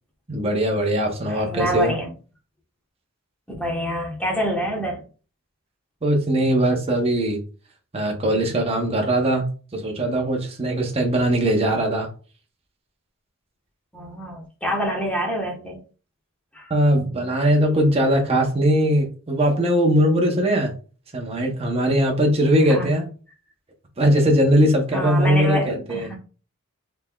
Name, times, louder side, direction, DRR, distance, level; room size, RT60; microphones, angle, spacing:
voice 1, 0.3-1.9 6.0-7.4 7.9-9.4 9.7-12.1 16.7-20.7 21.1-23.1 24.0-26.1, right 1 dB, 30° right, 0.7 m, -20 dB
voice 2, 1.3-2.1 3.6-5.0 13.9-15.8 16.5-16.7 22.7-22.9 24.9-26.2, equal, 5° left, 1.1 m, -26 dB
3.9 x 3.3 x 2.3 m
head